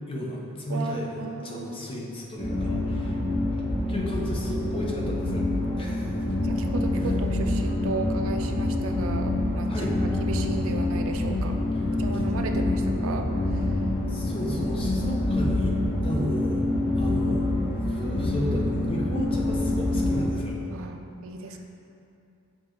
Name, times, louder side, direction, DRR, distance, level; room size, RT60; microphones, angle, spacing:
voice 1, 0.1-3.2 3.9-5.4 5.8-6.1 9.7-9.9 14.1-15.7 16.0-16.7 16.9-17.5 17.9-20.6, equal, 25° left, -2 dB, 0.7 m, -33 dB
voice 2, 0.7-1.8 6.4-9.9 10.2-11.6 11.9-13.8 16.8-17.0 20.7-21.6, right 4 dB, 65° right, 5 dB, 0.4 m, -35 dB
sound 1, 2.4-20.3, left 1 dB, 45° left, 1.4 m, -26 dB
6.7 x 3.8 x 3.7 m, 2.7 s
head